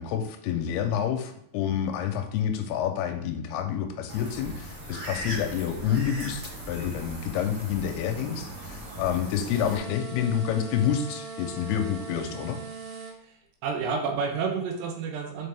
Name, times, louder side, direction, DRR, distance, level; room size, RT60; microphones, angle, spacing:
voice 1, 0.0-12.6, left 9 dB, 80° left, 6 dB, 2.4 m, -28 dB
sound 1, 4.1-9.8, right 1 dB, 40° right, 1.8 m, -39 dB
sound 2, 9.4-13.2, right 4 dB, 65° right, 2.4 m, -40 dB
voice 2, 13.2-15.5, right 5 dB, 85° right, 4 dB, 3.0 m, -30 dB
5.5 x 5.1 x 3.3 m, 0.68 s
omnidirectional pair, 4.8 m